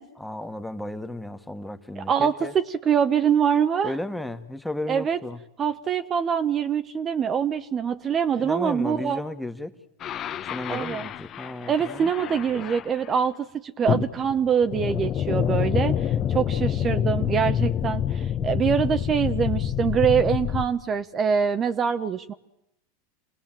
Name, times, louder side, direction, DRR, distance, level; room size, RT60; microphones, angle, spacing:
voice 1, 0.2-2.5 3.8-5.4 8.4-9.7 10.5-12.1 12.5-12.7 16.2-16.4, left 1 dB, 5° left, 8 dB, 1.6 m, -34 dB
voice 2, 2.0-3.9 4.9-5.2 5.6-9.2 10.7-11.1 11.7-22.3, right 7 dB, 30° right, 10 dB, 0.9 m, -24 dB
sound 1, 10.0-13.2 13.9-20.6, left 9 dB, 40° left, 1.1 m, -27 dB
28.5 x 19.5 x 7.6 m, 0.84 s
hypercardioid pair, 100°, 0 cm